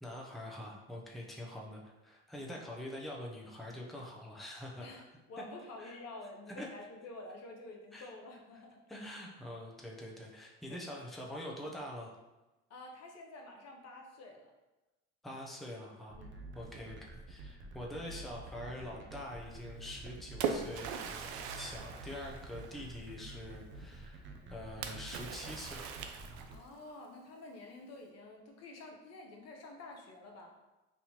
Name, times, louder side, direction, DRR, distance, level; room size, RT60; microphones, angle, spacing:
voice 1, 0.0-4.9 5.4-5.5 5.8-6.0 6.5-6.7 7.9-8.1 8.9-12.1 15.2-16.2 16.5-21.3 21.5-24.2 24.5-26.0, left 1 dB, ahead, -2 dB, 0.7 m, -45 dB
voice 2, 5.3-8.8 10.7-10.8 12.7-14.5 16.2-16.5 26.5-30.6, left 2 dB, 50° left, 1 dB, 0.8 m, -49 dB
sound 1, 16.1-26.6, right 3 dB, 35° right, 0.6 m, -49 dB
Splash splatter, 19.8-23.0 24.8-26.7, right 6 dB, 80° right, 0.5 m, -40 dB
4.2 x 2.6 x 2.9 m, 1.1 s
hypercardioid pair, 65°, 33 cm